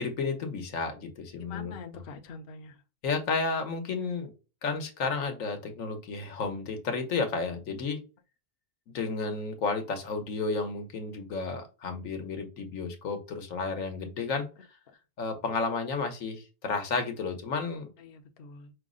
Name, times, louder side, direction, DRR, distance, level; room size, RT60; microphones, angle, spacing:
voice 1, 0.0-2.0 3.0-4.3 4.6-8.0 8.9-14.5 15.2-17.9, left 4 dB, 80° left, 1.3 m, -32 dB
voice 2, 1.4-2.7 18.0-18.7, left 4 dB, 55° left, 0.8 m, -45 dB
5.4 x 2.0 x 3.6 m
omnidirectional pair, 1.4 m